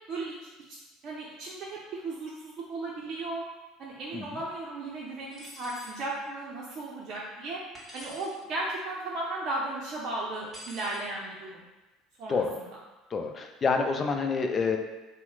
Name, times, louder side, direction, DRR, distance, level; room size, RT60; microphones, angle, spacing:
voice 1, 1.0-3.4 3.8-7.6 7.9-11.6 12.2-12.4, right 2 dB, 50° right, -5 dB, 0.5 m, -35 dB
sound 1, 5.3-6.0 7.7-8.3 10.5-11.0, equal, ahead, 1.5 m, -46 dB
voice 2, 13.1-14.8, left 4 dB, 35° left, 4 dB, 0.4 m, -28 dB
2.8 x 2.0 x 3.9 m, 1.1 s
hypercardioid pair, 70°, 0 cm